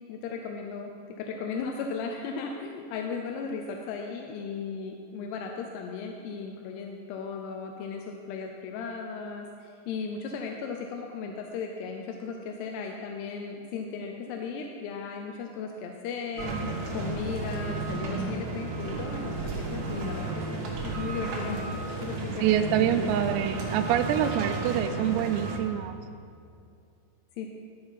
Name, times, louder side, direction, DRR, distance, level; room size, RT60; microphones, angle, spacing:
voice 1, 0.1-0.9 1.2-21.7 22.0-23.1 27.4-27.5, left 5 dB, 80° left, 3 dB, 2.5 m, -36 dB
sound 1, 16.4-25.6, right 2 dB, 65° right, 1.9 m, -33 dB
voice 2, 22.4-26.0, right 10 dB, 85° right, 7 dB, 2.5 m, -26 dB
12.0 x 5.6 x 5.6 m, 2.4 s
omnidirectional pair, 5.2 m